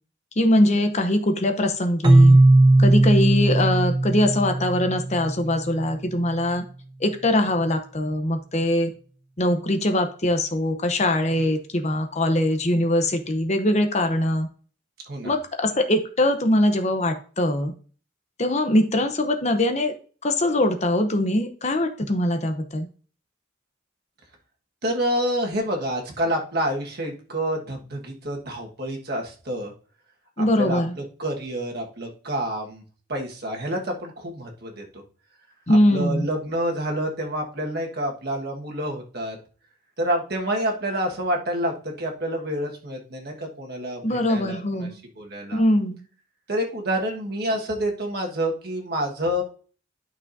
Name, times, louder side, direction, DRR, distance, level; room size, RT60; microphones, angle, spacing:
voice 1, 0.4-2.4 2.8-6.6 7.0-8.9 9.4-14.5 15.2-17.7 18.4-19.9 20.2-22.9 30.4-30.9 35.7-36.3 44.0-45.0 45.5-46.0, left 1 dB, 35° left, 6 dB, 0.8 m, -22 dB
Keyboard (musical), 2.0-5.7, right 2 dB, 20° right, 0.5 m, -17 dB
voice 2, 24.8-29.7 30.4-30.8 31.2-32.8 33.1-35.0 35.7-39.4 40.0-44.9 45.2-45.6 46.5-49.4, equal, 50° right, 1 dB, 1.5 m, -28 dB
11.5 x 6.0 x 2.7 m, 0.40 s
head